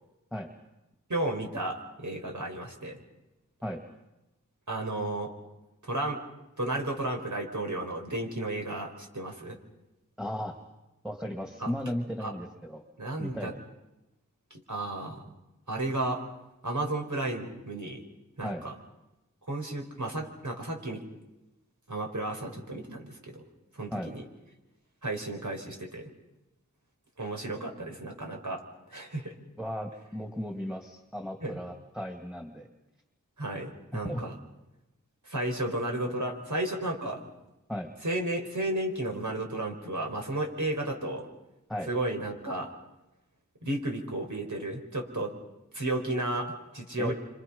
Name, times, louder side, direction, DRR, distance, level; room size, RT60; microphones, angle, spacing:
voice 1, 1.1-3.0 4.7-5.3 5.8-6.2 6.6-9.6 11.6-11.7 12.2-12.3 13.0-13.5 14.5-15.2 15.7-16.2 16.6-18.0 18.4-18.7 19.5-21.0 21.9-23.4 23.7-24.2 25.0-26.1 27.2-28.6 28.9-29.4 31.4-31.6 33.4-34.3 35.2-37.2 38.0-41.3 41.9-42.7 43.6-45.3 45.7-47.1, right 1 dB, 70° right, 2 dB, 4.8 m, -33 dB
voice 2, 10.2-10.6 11.0-12.8 13.2-13.5 18.4-18.6 23.9-24.1 29.6-32.7 34.0-34.2 37.7-37.9 41.7-41.9 47.0-47.1, equal, ahead, 4 dB, 2.5 m, -35 dB
29.5 x 27.0 x 5.6 m, 0.97 s
wide cardioid pair, 50°, 32 cm